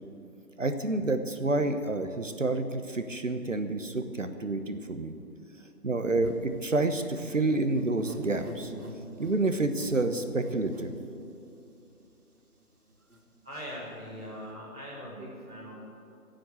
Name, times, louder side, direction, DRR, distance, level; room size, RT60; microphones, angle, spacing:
voice 1, 0.6-5.1 5.8-8.7 9.2-10.9, right 2 dB, 55° right, 8 dB, 1.1 m, -29 dB
sound 1, 6.2-11.8 12.3-12.4 12.6-13.2, equal, 75° right, 3.3 m, -46 dB
voice 2, 13.4-15.7, equal, 5° right, -16 dB, 1.2 m, -41 dB
18.0 x 7.9 x 8.5 m, 2.5 s
figure-of-eight pair, 160°, 45 cm